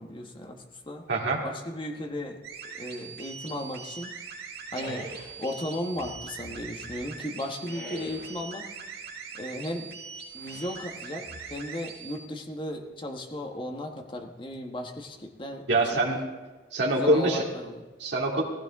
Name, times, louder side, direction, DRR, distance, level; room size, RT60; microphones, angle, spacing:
voice 1, 0.0-1.1 1.4-4.1 4.7-5.1 5.4-8.7 9.3-9.9 10.3-15.7 16.9-17.8, left 1 dB, 30° left, 3 dB, 1.2 m, -36 dB
sound 1, 2.4-12.2, right 6 dB, 60° right, 2.3 m, -42 dB
sound 2, 4.8-5.4 5.9-7.1 7.6-8.5 10.4-10.8 11.2-11.9, equal, 60° left, 4.0 m, -43 dB
voice 2, 15.7-16.2 16.7-17.4 18.0-18.4, right 2 dB, 80° right, -3 dB, 2.2 m, -24 dB
16.0 x 15.5 x 3.6 m, 1.2 s
head